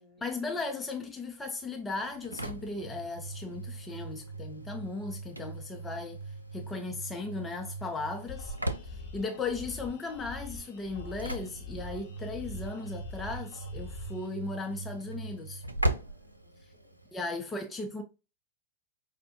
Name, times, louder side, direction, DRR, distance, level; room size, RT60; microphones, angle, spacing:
voice 1, 0.2-6.2 6.5-8.5 8.8-15.6 17.1-18.0, left 3 dB, 15° left, 0.6 m, -37 dB
Engine / Slam, 2.0-17.1, right 2 dB, 85° right, 0.3 m, -39 dB
sound 1, 8.3-14.3, left 3 dB, 60° left, 0.8 m, -44 dB
voice 2, 8.9-9.6 15.9-17.2, equal, 40° right, 1.6 m, -64 dB
5.2 x 2.1 x 2.8 m
figure-of-eight pair, 90°, 0 cm